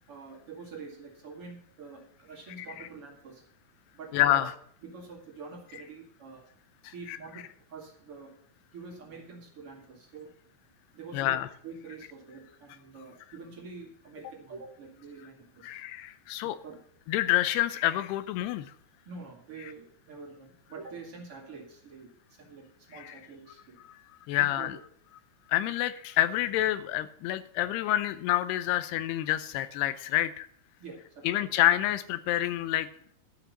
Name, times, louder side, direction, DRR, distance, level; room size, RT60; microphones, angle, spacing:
voice 1, 0.0-3.4 3.9-4.5 4.8-6.4 6.9-8.3 8.7-10.3 10.9-15.7 16.6-16.8 19.1-23.8 24.4-24.7 30.8-31.4, right 4 dB, 40° right, 0 dB, 2.4 m, -46 dB
voice 2, 2.6-2.9 4.1-4.5 6.8-7.2 11.1-11.5 15.6-16.6 17.1-18.7 23.0-23.1 23.9-24.0 24.3-24.8 25.5-30.5 31.2-32.9, left 14 dB, 80° left, 13 dB, 2.5 m, -28 dB
12.5 x 5.9 x 7.1 m, 0.62 s
omnidirectional pair, 4.9 m